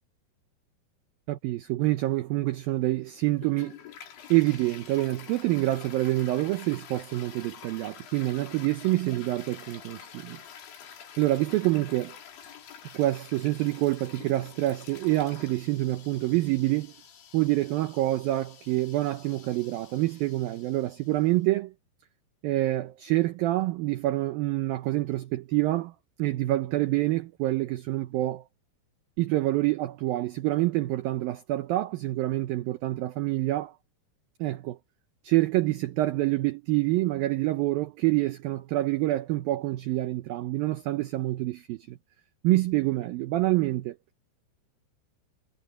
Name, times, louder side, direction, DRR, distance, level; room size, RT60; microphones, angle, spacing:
voice 1, 1.3-3.8 4.3-10.4 11.2-12.2 12.9-16.9 17.3-21.7 22.4-25.9 26.2-28.4 29.2-33.7 34.4-34.8 35.2-42.0 42.4-44.0, right 17 dB, 80° right, 2.1 m, -27 dB
Toilet flush, 3.4-21.3, left 9 dB, 80° left, 5.3 m, -48 dB
omnidirectional pair, 5.1 m